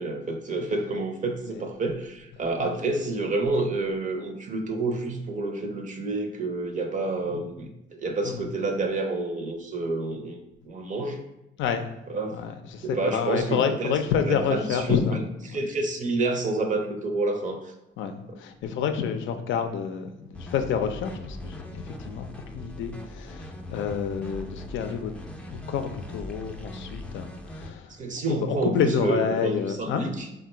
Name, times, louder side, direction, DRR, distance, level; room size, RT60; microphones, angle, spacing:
voice 1, 0.0-11.2 12.1-12.4 12.8-15.2 15.5-17.7 27.9-30.3, right 2 dB, 40° right, 5 dB, 0.6 m, -29 dB
voice 2, 12.3-15.2 15.5-15.6 18.0-22.3 22.5-25.1 25.5-27.9 28.4-30.1, left 7 dB, 75° left, 8 dB, 0.4 m, -28 dB
sound 1, 20.3-27.7, left 1 dB, 5° left, 0.4 m, -40 dB
3.7 x 2.2 x 4.2 m, 0.91 s
cardioid pair, 90°, 20 cm